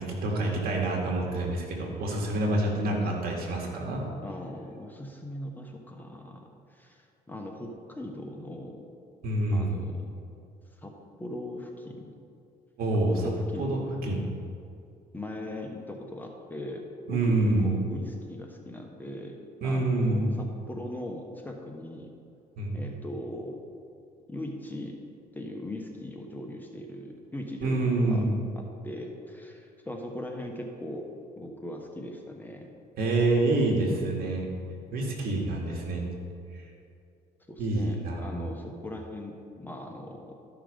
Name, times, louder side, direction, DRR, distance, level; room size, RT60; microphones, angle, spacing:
voice 1, 0.0-4.0 9.2-9.8 12.8-13.3 13.6-14.2 17.1-17.7 19.6-20.3 22.6-22.8 27.6-28.3 33.0-34.5 34.9-36.1 37.6-38.4, right 2 dB, 65° right, 0 dB, 2.2 m, -27 dB
voice 2, 4.2-8.8 9.5-10.1 10.8-10.9 11.2-12.1 13.2-14.0 15.1-19.4 19.6-22.1 22.7-23.6 24.3-25.0 25.3-28.2 28.6-31.1 31.4-32.7 37.5-40.3, left 1 dB, 10° left, 1 dB, 1.1 m, -39 dB
13.0 x 5.9 x 5.1 m, 2.5 s
cardioid pair, 110°, 17 cm